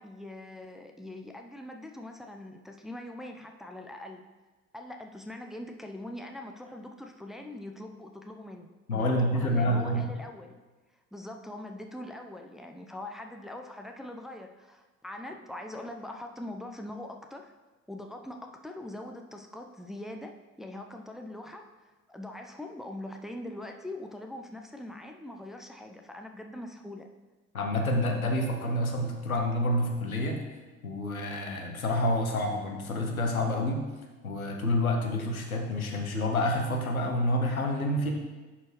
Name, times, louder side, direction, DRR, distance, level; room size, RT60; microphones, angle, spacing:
voice 1, 0.0-4.2 4.7-10.5 11.1-17.5 17.9-27.1, left 1 dB, ahead, 3 dB, 0.6 m, -42 dB
voice 2, 8.9-10.0 27.5-30.4 30.8-33.8 34.2-38.1, left 1 dB, 90° left, 2 dB, 0.8 m, -28 dB
10.5 x 4.4 x 3.1 m, 1.3 s
figure-of-eight pair, 50°, 41 cm